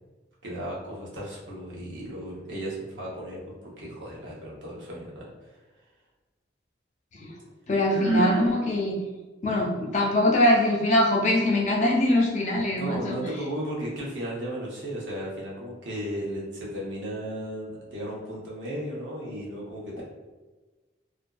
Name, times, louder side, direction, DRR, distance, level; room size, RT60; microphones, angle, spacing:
voice 1, 0.4-5.6 12.7-20.0, equal, 80° right, -4 dB, 0.8 m, -35 dB
voice 2, 7.7-8.9 9.4-13.2, left 1 dB, 40° left, -1 dB, 0.4 m, -23 dB
Sigh, 7.9-8.5, right 2 dB, 30° right, 0.4 m, -26 dB
2.5 x 2.2 x 2.3 m, 1.2 s
head